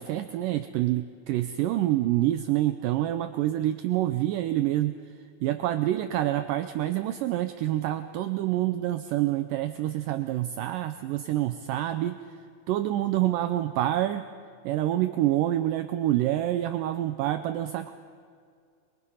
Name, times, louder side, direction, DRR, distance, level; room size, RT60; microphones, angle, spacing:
voice 1, 0.0-5.0 5.4-12.2 12.7-14.3 14.6-17.9, right 14 dB, 80° right, 8 dB, 2.1 m, -27 dB
23.5 x 23.0 x 5.6 m, 2.2 s
omnidirectional pair, 4.3 m